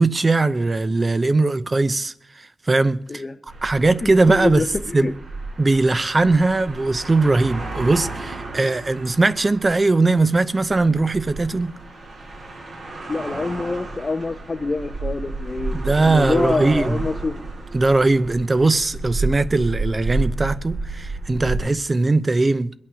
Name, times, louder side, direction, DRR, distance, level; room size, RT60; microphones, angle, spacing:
voice 1, 0.0-3.2 3.6-4.6 4.9-5.1 5.6-11.7 15.7-17.0 17.7-22.7, right 3 dB, 30° right, 0.7 m, -20 dB
sound 1, 3.5-21.6, right 3 dB, 75° right, 4.9 m, -32 dB
voice 2, 4.0-5.1 13.1-17.4, left 3 dB, 35° left, 0.7 m, -26 dB
22.0 x 8.6 x 6.3 m
cardioid pair, 75°, 0 cm